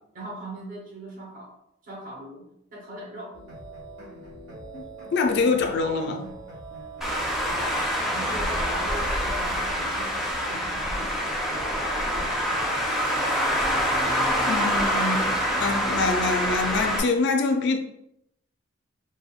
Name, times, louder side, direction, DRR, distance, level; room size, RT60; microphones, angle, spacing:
voice 1, 0.1-1.5 1.8-3.4 6.7-12.6, right 1 dB, 45° right, 0.9 m, -41 dB
sound 1, 3.3-14.2, right 2 dB, 70° right, 1.3 m, -43 dB
voice 2, 5.1-6.3 14.5-17.8, left 3 dB, 60° left, 0.4 m, -25 dB
Traffic noise roadway noise, 7.0-17.0, equal, ahead, 0.5 m, -26 dB
3.5 x 2.1 x 2.3 m
head